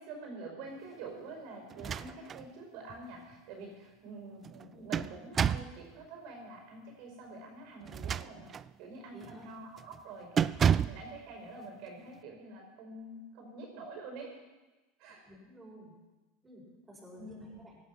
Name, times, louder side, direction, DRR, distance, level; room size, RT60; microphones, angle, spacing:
voice 1, 0.0-8.5 8.8-14.4 15.0-15.2 17.1-17.6, right 3 dB, 60° right, 2 dB, 5.2 m, -47 dB
sound 1, 1.7-2.5 2.9-3.0 4.4-5.8 7.8-8.7 9.2-9.5 9.8-10.0 10.4-11.1, right 8 dB, 30° right, 0.4 m, -30 dB
voice 2, 9.1-9.5 15.3-15.9 16.4-17.9, equal, 15° right, -4 dB, 6.4 m, -52 dB
17.0 x 11.0 x 6.0 m, 1.1 s
hypercardioid pair, 105°, 0 cm